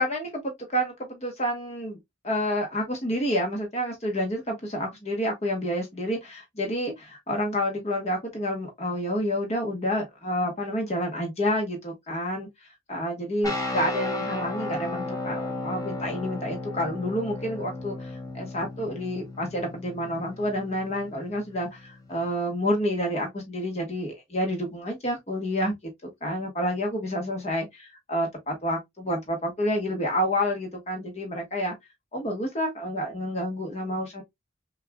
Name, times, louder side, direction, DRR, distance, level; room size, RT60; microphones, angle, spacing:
voice 1, 0.0-2.0 2.2-12.5 12.9-25.8 26.0-31.7 32.1-34.2, equal, 35° left, 1.3 m, -29 dB
sound 1, 13.4-22.3, left 2 dB, 20° left, 1.1 m, -35 dB
6.5 x 2.5 x 2.3 m
head